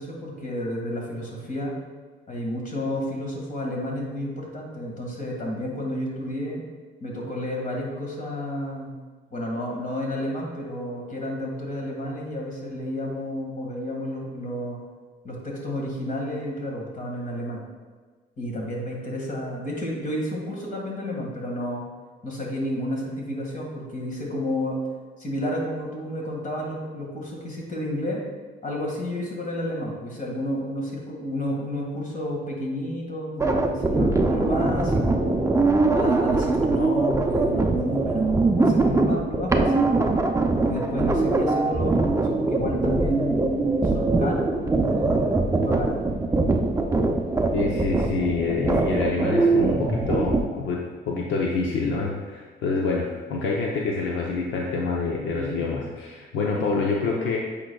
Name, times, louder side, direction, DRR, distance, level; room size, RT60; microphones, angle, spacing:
voice 1, 0.0-1.7 2.3-6.6 7.0-8.9 9.3-14.8 15.2-17.6 18.4-21.8 22.2-24.8 25.2-28.2 28.6-35.4 35.8-40.0 40.6-45.9 55.4-55.7, left 1 dB, 40° left, -1 dB, 1.8 m, -31 dB
sound 1, 33.4-50.4, right 3 dB, 15° right, 0.5 m, -22 dB
voice 2, 47.5-57.4, left 4 dB, 75° left, -2 dB, 0.8 m, -27 dB
8.5 x 5.1 x 2.3 m, 1.4 s
cardioid pair, 90°, 20 cm